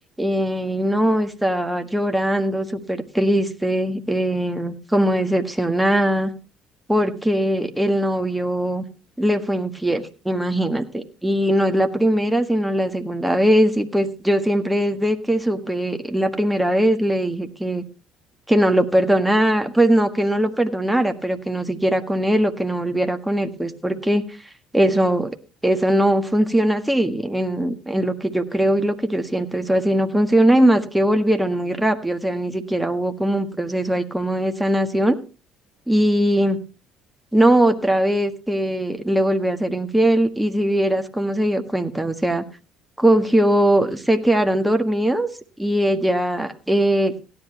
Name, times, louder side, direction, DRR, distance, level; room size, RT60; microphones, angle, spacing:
voice 1, 0.2-6.3 6.9-8.9 9.2-17.8 18.5-24.2 24.7-25.3 25.6-35.2 35.9-36.6 37.3-42.4 43.0-45.3 45.6-47.2, right 1 dB, 5° right, 6 dB, 1.6 m, -20 dB
16.5 x 10.5 x 3.0 m, 0.32 s
hypercardioid pair, 65°, 0 cm